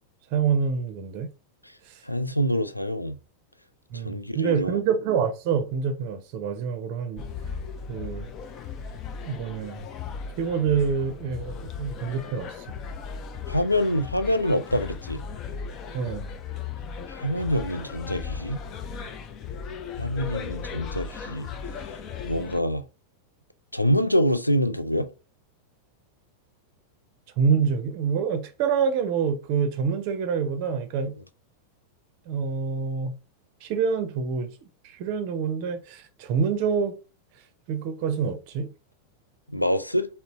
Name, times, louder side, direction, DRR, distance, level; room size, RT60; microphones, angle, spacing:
voice 1, 0.3-1.3 1.9-2.0 3.9-7.2 7.9-8.3 9.2-9.9 10.4-12.8 15.9-16.3 27.4-31.1 32.3-33.1 33.6-34.5 34.8-37.0 37.7-38.7, right 6 dB, 45° right, 0.6 m, -26 dB
voice 2, 2.0-3.2 3.9-4.8 13.5-15.2 17.1-18.6 20.0-21.5 22.2-22.8 23.7-25.1 39.5-40.1, equal, 90° left, 0.3 m, -25 dB
sound 1, 7.2-22.6, left 6 dB, 35° left, 0.5 m, -37 dB
3.9 x 2.1 x 4.1 m
figure-of-eight pair, 90°, 0 cm